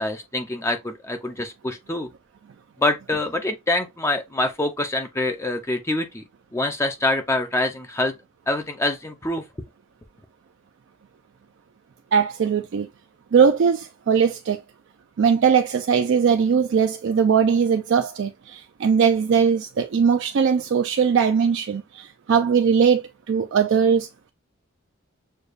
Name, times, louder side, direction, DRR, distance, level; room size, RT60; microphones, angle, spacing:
voice 1, 0.0-2.1 2.8-6.2 6.5-8.1 8.5-9.4, left 2 dB, 15° left, 0.4 m, -25 dB
voice 2, 12.1-12.9 13.3-14.6 15.2-24.3, right 6 dB, 60° right, 0.4 m, -20 dB
6.5 x 2.3 x 2.4 m
head